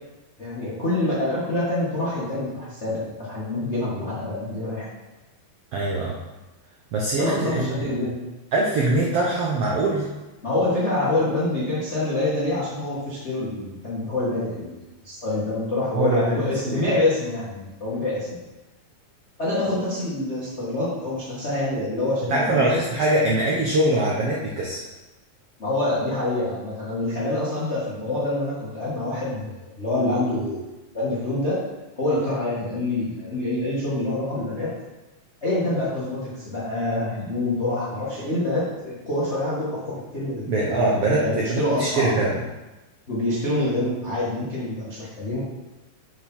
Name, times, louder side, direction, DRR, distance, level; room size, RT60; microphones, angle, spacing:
voice 1, 0.4-4.8 7.1-8.2 10.4-14.8 15.0-18.4 19.4-22.6 25.6-30.6 30.9-31.6 32.0-34.7 35.4-42.2 43.1-45.4, left 2 dB, 60° left, -8 dB, 0.7 m, -26 dB
voice 2, 5.7-6.2 6.9-7.9 8.5-10.1 15.9-16.8 22.3-24.8 40.5-42.3, right 2 dB, 75° right, -3 dB, 1.4 m, -23 dB
7.0 x 4.8 x 5.4 m, 1.1 s
omnidirectional pair, 4.0 m